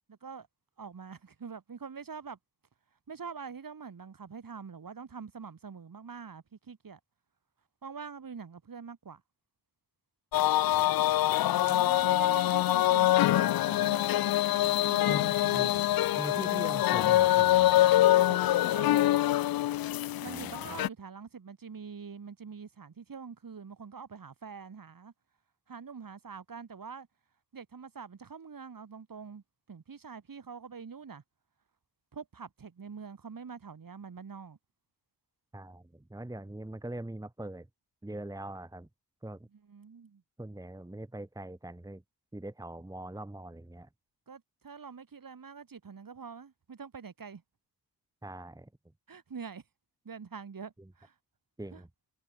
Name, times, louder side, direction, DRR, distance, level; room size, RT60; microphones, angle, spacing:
voice 1, 0.1-0.5 0.8-2.4 3.1-7.0 7.8-9.2 11.4-15.9 17.8-19.1 20.2-25.1 25.7-27.1 27.5-31.2 32.1-34.6 39.5-40.2 44.3-47.4 49.1-49.6 50.0-51.1 51.7-51.8, right 6 dB, 50° right, 4.4 m, -45 dB
sound 1, 10.3-20.9, left 14 dB, 55° left, 0.5 m, -25 dB
voice 2, 15.1-15.7 16.1-17.7 20.3-20.8 35.5-37.7 38.0-38.9 39.2-39.4 40.4-42.0 42.3-43.9 48.2-48.7 51.6-51.9, right 1 dB, 10° right, 1.4 m, -42 dB
cardioid pair, 55°, 43 cm